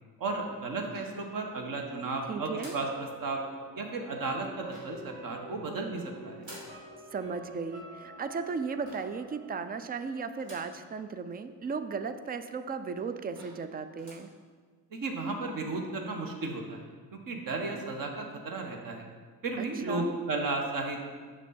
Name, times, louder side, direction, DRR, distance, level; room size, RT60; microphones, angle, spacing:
voice 1, 0.2-2.9 3.2-3.4 3.8-6.4 14.9-16.8 17.1-19.1 19.4-21.0, right 3 dB, 40° right, 2 dB, 1.4 m, -34 dB
sound 1, 0.9-1.7 2.6-3.0 4.7-5.1 6.4-6.8 8.9-9.2 10.4-10.8 11.3-11.4 11.6-11.7 12.5-12.6 13.0-13.1 13.3-13.7 14.0-14.3, right 1 dB, 65° right, 2.5 m, -50 dB
sound 2, 1.6-10.6 10.9-11.0, right 1 dB, 80° right, 2.3 m, -49 dB
voice 2, 2.3-2.7 7.1-14.3 19.6-20.1, right 5 dB, 20° right, 10 dB, 0.4 m, -36 dB
7.0 x 6.6 x 4.3 m, 1.5 s
figure-of-eight pair, 45°, 49 cm